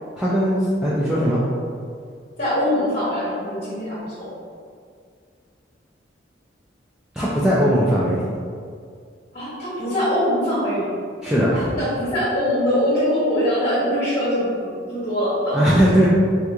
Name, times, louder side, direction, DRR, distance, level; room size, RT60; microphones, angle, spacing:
voice 1, 0.2-1.4 7.1-8.3 11.2-11.7 15.5-16.1, equal, 5° right, -10 dB, 0.3 m, -19 dB
voice 2, 2.4-4.3 9.3-10.9 11.5-15.7, equal, 40° left, -9 dB, 0.9 m, -23 dB
3.5 x 2.3 x 2.8 m, 2.1 s
head